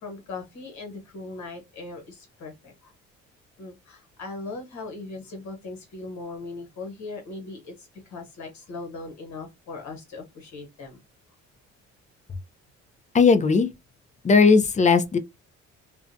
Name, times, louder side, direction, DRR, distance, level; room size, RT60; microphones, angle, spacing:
voice 1, 0.0-2.9 3.6-11.0, left 3 dB, 75° left, 1.2 m, -39 dB
voice 2, 13.1-13.7 14.2-15.2, left 4 dB, 25° left, 0.5 m, -17 dB
2.5 x 2.1 x 2.6 m
cardioid pair, 90°, 29 cm